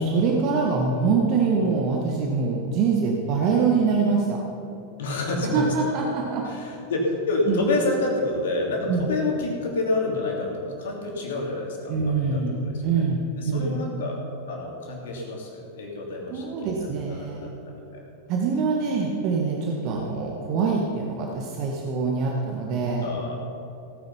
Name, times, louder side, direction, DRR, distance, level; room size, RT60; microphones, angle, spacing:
voice 1, 0.0-4.4 5.4-6.5 7.5-7.6 8.9-9.1 11.9-13.8 16.3-17.5 18.3-23.1, right 4 dB, 40° right, 0 dB, 1.6 m, -24 dB
voice 2, 5.0-5.7 6.4-12.8 13.3-14.2 14.5-18.0 23.0-23.4, left 2 dB, 60° left, -1 dB, 3.2 m, -28 dB
17.5 x 9.6 x 5.6 m, 3.0 s
figure-of-eight pair, 90°, 0 cm